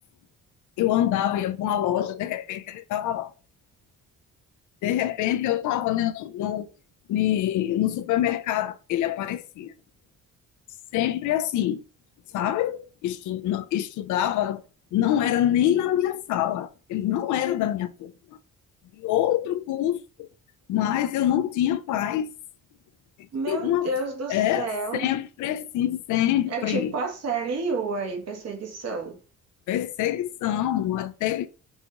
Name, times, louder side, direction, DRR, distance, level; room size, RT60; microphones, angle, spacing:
voice 1, 0.8-3.3 4.8-6.7 7.1-9.7 10.9-11.8 12.3-14.6 14.9-18.1 19.0-20.3 20.7-22.3 23.5-23.9 24.3-27.0 29.7-31.5, left 12 dB, 75° left, 0.5 m, -25 dB
voice 2, 23.3-25.1 26.5-29.2, right 3 dB, 55° right, 1.1 m, -30 dB
5.4 x 2.4 x 2.9 m
cardioid pair, 90°, 30 cm